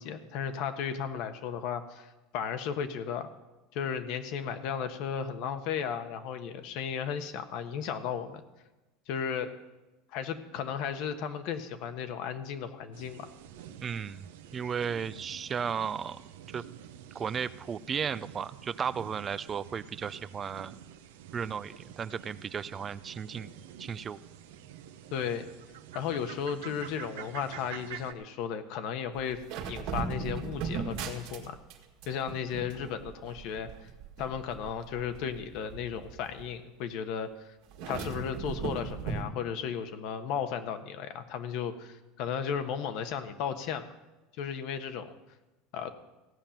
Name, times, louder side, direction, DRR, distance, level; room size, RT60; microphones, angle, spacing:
voice 1, 0.0-3.3 3.7-8.4 9.1-9.5 10.1-13.3 25.1-25.5 25.9-29.4 29.7-31.6 32.1-33.7 34.2-37.5 37.8-43.9 44.4-45.1 45.7-45.9, left 7 dB, 65° left, 9 dB, 1.2 m, -35 dB
sound 1, 12.9-28.1, right 10 dB, 85° right, 0.8 m, -48 dB
voice 2, 13.8-16.2 16.5-16.6 17.1-20.7 21.3-23.5 23.8-24.2, right 7 dB, 30° right, 16 dB, 0.4 m, -35 dB
sound 2, 29.2-31.8 32.0-36.5 37.7-39.2, right 5 dB, 65° right, 1.7 m, -38 dB
15.5 x 5.6 x 9.0 m, 1.1 s
supercardioid pair, 105°, 0 cm